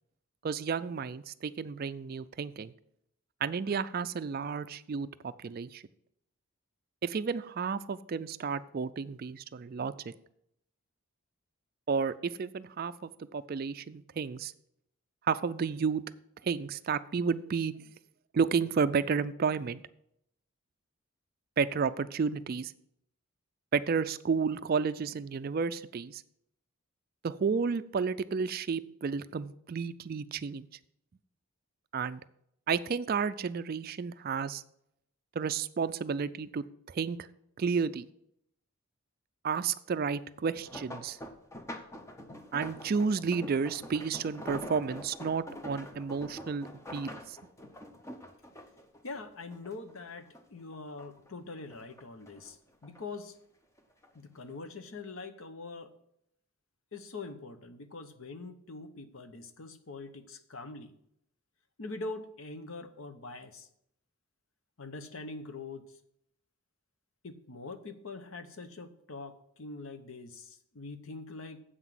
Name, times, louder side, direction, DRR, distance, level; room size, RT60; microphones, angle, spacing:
voice 1, 0.4-2.7 3.4-5.8 7.0-10.1 11.9-14.5 15.3-16.0 16.4-17.7 18.3-19.8 21.6-22.7 23.7-26.2 27.2-30.7 31.9-32.2 32.7-34.6 35.4-37.2 37.6-38.1 39.4-41.2 42.5-47.4, right 5 dB, 40° right, 14 dB, 0.3 m, -32 dB
sound 1, 40.4-50.0 50.3-51.3 51.7-53.0 53.8-54.1 54.5-54.6, equal, 15° left, 0.7 m, -45 dB
voice 2, 49.0-53.4 54.1-55.9 56.9-60.9 61.8-63.7 64.8-65.9 67.2-71.6, left 3 dB, 65° left, 10 dB, 0.9 m, -43 dB
7.9 x 6.0 x 7.5 m, 0.75 s
head